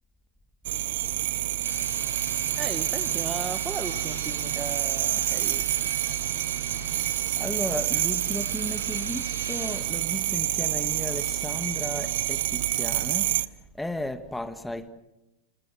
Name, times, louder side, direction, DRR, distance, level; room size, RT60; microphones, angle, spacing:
sound 1, 0.6-13.5, right 15 dB, 55° right, 0.8 m, -28 dB
sound 2, 1.6-9.8, equal, 90° left, 4.8 m, -41 dB
voice 1, 2.5-5.8, right 4 dB, 15° right, 1.2 m, -36 dB
voice 2, 7.4-13.3 13.8-14.9, left 1 dB, 5° left, 1.6 m, -34 dB
27.5 x 26.5 x 6.3 m
figure-of-eight pair, 90°, 0 cm